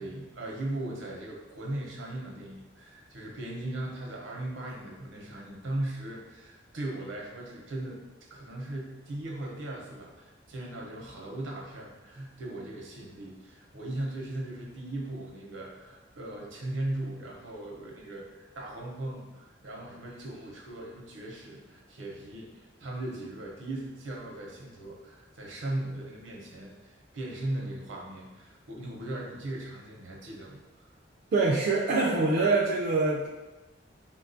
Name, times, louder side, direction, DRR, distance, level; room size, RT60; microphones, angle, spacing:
voice 1, 0.0-8.0 8.3-30.6, right 1 dB, 85° right, -2 dB, 0.6 m, -38 dB
voice 2, 31.3-33.3, right 3 dB, 50° right, -3 dB, 0.3 m, -24 dB
3.6 x 2.3 x 2.5 m, 1.1 s
head